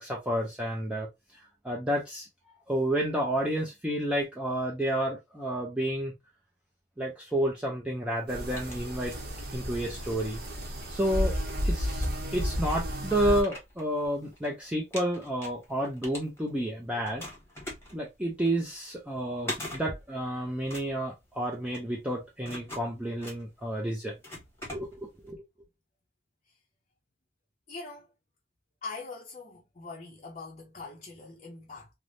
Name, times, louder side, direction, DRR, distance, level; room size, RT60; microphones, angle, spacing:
voice 1, 0.0-2.3 2.7-6.1 7.0-9.1 9.5-10.4 10.9-11.4 11.6-17.2 17.9-24.1 24.7-25.4, right 1 dB, 5° right, 0.4 m, -30 dB
sound 1, 8.2-9.5 9.9-11.6 12.2-12.3 12.6-14.5 14.8-16.7 17.0-25.3, left 1 dB, 15° left, 1.0 m, -43 dB
sound 2, 8.3-13.4, equal, 60° right, 0.8 m, -32 dB
voice 2, 27.7-28.1 28.8-31.9, left 3 dB, 40° left, 0.6 m, -42 dB
3.2 x 2.0 x 2.5 m
head